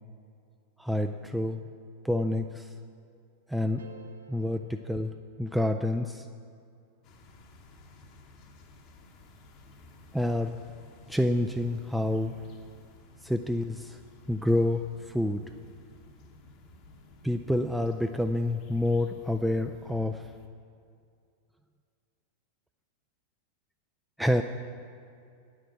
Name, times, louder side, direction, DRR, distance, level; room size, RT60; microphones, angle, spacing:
voice 1, 0.8-1.6 2.0-2.7 3.5-3.9 4.3-6.3 10.1-10.6 11.1-12.4 13.2-14.0 14.3-15.4 17.2-20.3 24.2-24.4, left 1 dB, 5° right, 6 dB, 0.3 m, -28 dB
sound 1, 3.8-6.0, right 6 dB, 75° right, 0.7 m, -53 dB
sound 2, 7.0-20.5, left 2 dB, 40° left, 0.9 m, -54 dB
8.9 x 6.5 x 8.0 m, 2.4 s
figure-of-eight pair, 90°, 0 cm